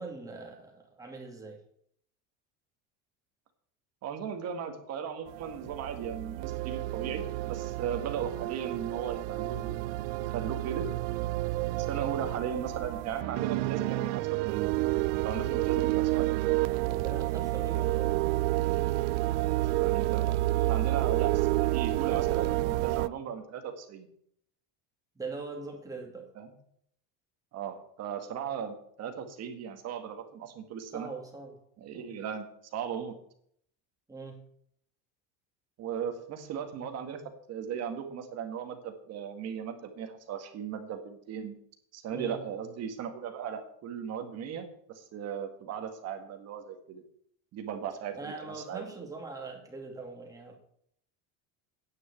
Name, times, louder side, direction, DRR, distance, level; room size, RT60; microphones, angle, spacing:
voice 1, 0.0-1.6 16.7-18.1 20.5-20.8 25.1-26.3 30.9-31.6 31.9-32.1 34.1-34.4 42.1-42.4 48.1-50.5, right 3 dB, 10° right, 1 dB, 2.4 m, -42 dB
voice 2, 4.0-10.9 11.8-14.8 15.2-16.3 19.6-20.3 20.7-24.1 26.4-26.5 27.5-31.1 31.8-33.1 35.8-37.2 37.5-41.6 41.9-47.0 47.5-48.8, right 8 dB, 45° right, 7 dB, 1.8 m, -37 dB
sound 1, 5.3-23.1, right 18 dB, 75° right, 0.5 m, -29 dB
9.4 x 6.3 x 8.4 m, 0.68 s
cardioid pair, 155°, 37 cm